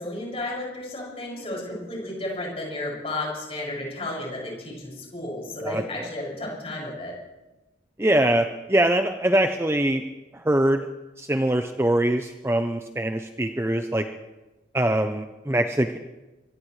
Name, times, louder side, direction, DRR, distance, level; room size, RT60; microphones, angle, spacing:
voice 1, 0.0-7.1, left 1 dB, 35° left, -3 dB, 6.4 m, -33 dB
voice 2, 5.6-6.1 8.0-10.0 10.5-10.9 11.2-14.1 14.7-16.0, right 1 dB, 15° right, 6 dB, 0.6 m, -23 dB
24.5 x 18.0 x 3.2 m, 1.1 s
head